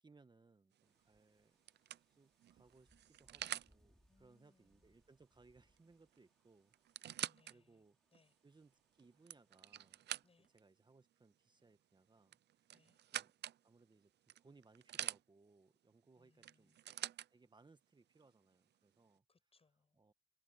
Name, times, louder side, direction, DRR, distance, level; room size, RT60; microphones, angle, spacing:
voice 1, 0.0-1.6 2.1-7.2 7.5-8.0 8.4-10.1 10.5-12.7 13.1-13.3 13.6-16.7 17.3-19.2 20.0-20.1, right 3 dB, 20° right, 1.4 m, -68 dB
sound 1, 0.8-10.6, equal, ahead, 5.1 m, -78 dB
sound 2, 0.8-1.1 1.7-3.7 5.8-5.9 6.1-6.2 6.7-7.5 8.1-8.2 9.0-10.6 12.3-13.6 14.3-15.2 16.4-17.3 18.2-18.3, right 12 dB, 60° right, 0.5 m, -46 dB
voice 2, 4.1-5.0 7.2-7.8 8.1-8.4 10.2-10.5 12.7-13.0 16.2-16.8 19.3-20.0, left 4 dB, 30° left, 7.3 m, -75 dB
cardioid pair, 90°, 20 cm